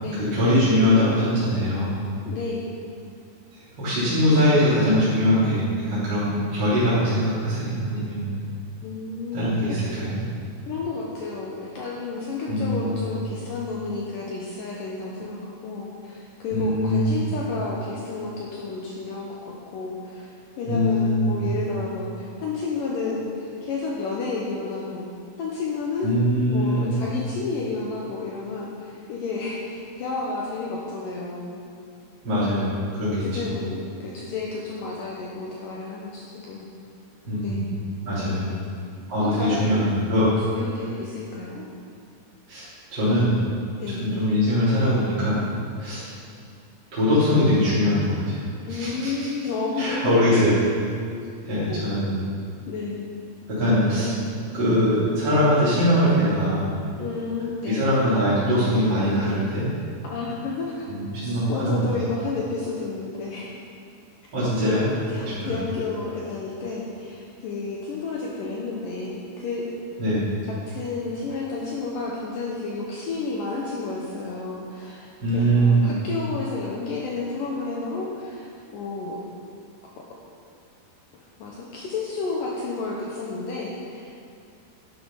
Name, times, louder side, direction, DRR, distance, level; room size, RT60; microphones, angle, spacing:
voice 1, 0.2-1.9 3.8-8.3 9.3-10.2 12.5-12.9 16.5-17.1 20.7-21.4 26.0-26.9 32.2-33.6 37.3-37.7 38.1-38.4 39.1-40.3 42.5-42.7 42.9-43.3 44.0-45.4 45.8-46.0 46.9-48.4 48.7-49.3 49.8-50.5 51.5-52.2 53.5-54.1 54.5-56.6 57.7-59.8 60.9-61.8 64.3-64.8 65.2-65.6 70.0-70.3 75.2-75.9, equal, 25° right, -13 dB, 3.7 m, -22 dB
voice 2, 2.2-2.7 8.8-9.8 10.7-25.1 25.4-26.1 26.5-31.6 32.5-32.8 33.2-36.7 37.4-37.7 38.3-38.7 39.2-39.8 40.5-41.7 43.8-44.1 48.7-50.4 51.7-51.8 52.7-53.1 57.0-58.0 60.1-60.9 61.2-63.6 64.6-69.7 70.5-78.5 78.7-79.2 81.4-84.1, left 3 dB, 85° left, -3 dB, 1.9 m, -31 dB
11.5 x 10.0 x 5.7 m, 2.4 s
omnidirectional pair, 5.5 m